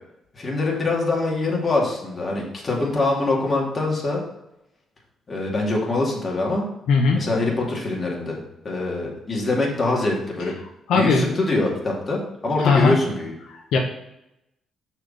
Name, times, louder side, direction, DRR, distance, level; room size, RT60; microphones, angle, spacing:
voice 1, 0.3-4.2 5.3-6.6 7.1-10.6 10.9-13.3, left 2 dB, 35° left, -2 dB, 2.5 m, -24 dB
voice 2, 6.9-7.2 10.9-11.4 12.6-12.9 13.5-13.8, left 4 dB, 80° left, 1 dB, 1.0 m, -19 dB
6.4 x 4.8 x 5.5 m, 0.86 s
cardioid pair, 90°, 0 cm